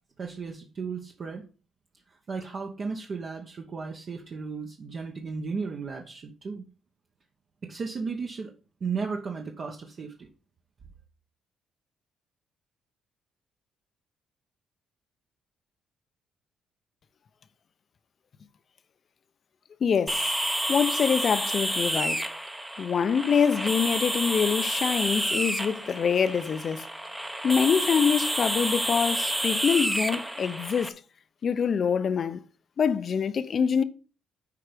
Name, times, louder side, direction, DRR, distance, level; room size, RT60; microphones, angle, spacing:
voice 1, 0.2-1.4 2.1-6.6 7.6-8.5 8.8-10.3, right 5 dB, 40° right, 1.0 m, -35 dB
voice 2, 19.8-20.3 20.7-22.3 22.8-26.9 27.4-31.0 31.4-32.4 32.8-33.8, left 6 dB, 45° left, 0.7 m, -25 dB
sound 1, 20.1-30.9, right 1 dB, 10° right, 0.8 m, -29 dB
8.4 x 4.6 x 5.1 m
cardioid pair, 120°, 0 cm